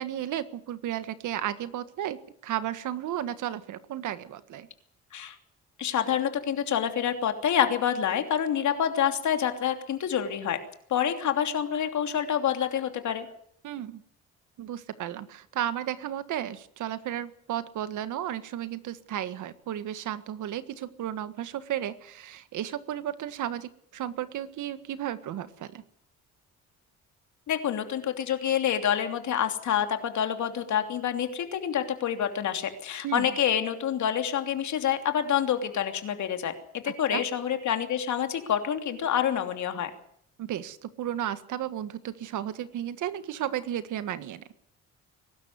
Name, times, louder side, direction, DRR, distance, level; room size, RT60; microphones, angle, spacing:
voice 1, 0.0-4.7 13.6-14.0 14.6-25.8 33.0-33.3 36.9-37.2 40.4-44.4, right 11 dB, 80° right, 12 dB, 1.7 m, -34 dB
voice 2, 5.8-10.6 10.9-13.2 27.5-36.5 36.8-39.9, left 9 dB, 70° left, 7 dB, 3.1 m, -27 dB
22.5 x 12.5 x 9.5 m, 0.68 s
cardioid pair, 90°, 30 cm